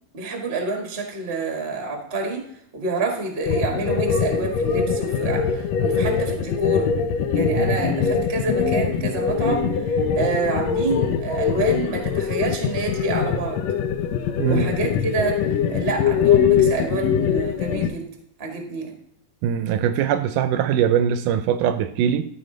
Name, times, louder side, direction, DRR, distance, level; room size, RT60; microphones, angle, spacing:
voice 1, 0.1-2.4 2.7-6.9 7.3-13.6 14.4-18.1 18.4-18.9, right 3 dB, 35° right, 2 dB, 1.0 m, -28 dB
sound 1, 3.4-17.9, left 6 dB, 80° left, 1.5 m, -22 dB
voice 2, 14.4-14.7 19.4-22.3, right 9 dB, 80° right, 10 dB, 2.0 m, -22 dB
13.5 x 4.9 x 3.8 m, 0.74 s
omnidirectional pair, 3.8 m